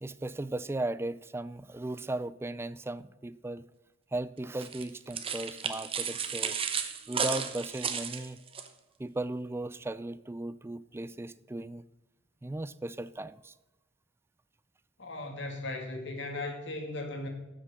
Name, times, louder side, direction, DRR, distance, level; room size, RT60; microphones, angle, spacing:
voice 1, 0.0-3.6 4.1-6.6 7.1-8.4 9.0-11.8 12.4-13.5, right 2 dB, 15° right, 0.3 m, -36 dB
sound 1, 4.6-8.7, right 7 dB, 30° right, 0.9 m, -34 dB
voice 2, 15.0-17.3, left 2 dB, 70° left, 2.2 m, -37 dB
12.5 x 6.4 x 6.5 m
head